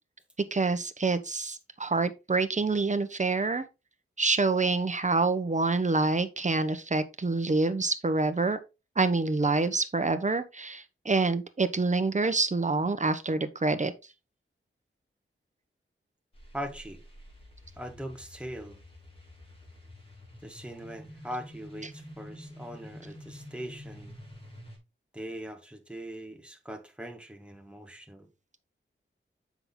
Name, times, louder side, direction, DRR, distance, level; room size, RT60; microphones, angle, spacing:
voice 1, 0.5-3.6 4.2-8.6 9.0-13.9, right 3 dB, 35° right, 1.1 m, -27 dB
sound 1, 16.3-24.8, left 1 dB, 25° left, 4.8 m, -48 dB
voice 2, 16.5-17.0 17.8-18.8 20.4-24.2 25.1-28.3, equal, 5° right, 1.6 m, -41 dB
7.6 x 6.0 x 3.9 m
wide cardioid pair, 95°, 21 cm